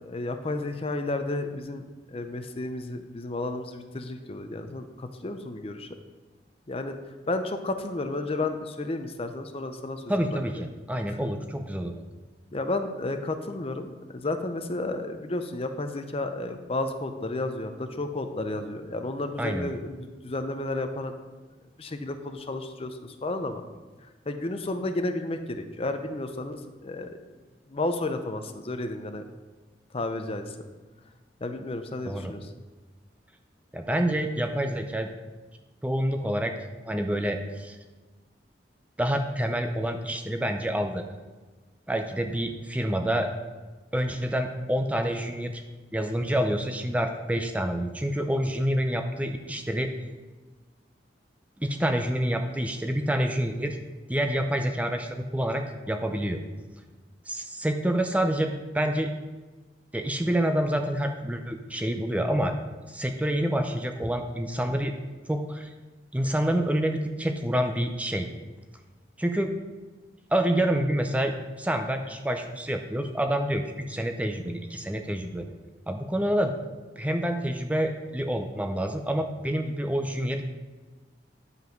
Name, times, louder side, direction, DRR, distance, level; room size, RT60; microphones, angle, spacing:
voice 1, 0.0-5.9 6.7-7.0 7.3-10.0 10.3-10.4 12.5-21.1 21.8-23.6 24.3-27.2 27.7-29.2 29.9-30.5 31.4-32.5, left 2 dB, 35° left, 7 dB, 0.6 m, -32 dB
voice 2, 10.1-11.9 19.4-19.7 32.0-32.3 33.7-35.1 35.8-36.5 36.9-37.8 39.0-41.0 41.9-43.3 43.9-45.6 45.9-49.9 51.6-53.8 54.1-56.4 57.3-59.1 59.9-62.5 62.9-64.9 65.3-65.7 66.1-68.3 69.2-69.6 70.3-75.5 75.9-76.5 77.0-80.4, right 1 dB, 10° right, 5 dB, 0.5 m, -27 dB
9.7 x 5.4 x 5.2 m, 1.3 s
head